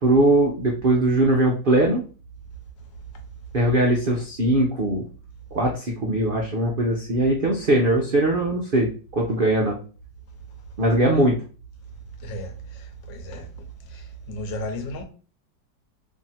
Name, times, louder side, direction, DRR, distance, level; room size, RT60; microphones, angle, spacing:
voice 1, 0.0-2.0 3.5-5.0 5.5-9.8 10.8-11.4, right 1 dB, 70° right, 0.5 m, -20 dB
voice 2, 12.2-13.5 13.9-15.0, equal, 75° left, 1.5 m, -34 dB
3.3 x 2.7 x 4.2 m
omnidirectional pair, 2.0 m